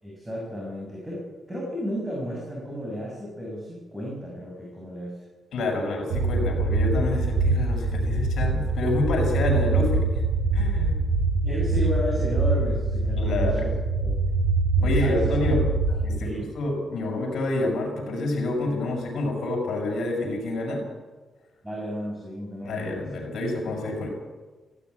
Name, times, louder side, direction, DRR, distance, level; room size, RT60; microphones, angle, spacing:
voice 1, 0.0-5.2 11.4-13.7 14.0-14.1 14.8-15.3 15.9-16.5 21.6-23.1, equal, 15° right, -3 dB, 6.7 m, -33 dB
voice 2, 5.5-10.2 10.5-11.0 13.2-13.7 14.8-15.6 16.0-16.3 16.6-20.8 22.6-24.1, left 2 dB, 70° left, 1 dB, 7.0 m, -28 dB
sound 1, 6.1-16.1, right 3 dB, 85° right, 5.8 m, -24 dB
16.5 x 16.5 x 9.9 m, 1.3 s
cardioid pair, 130°, 0 cm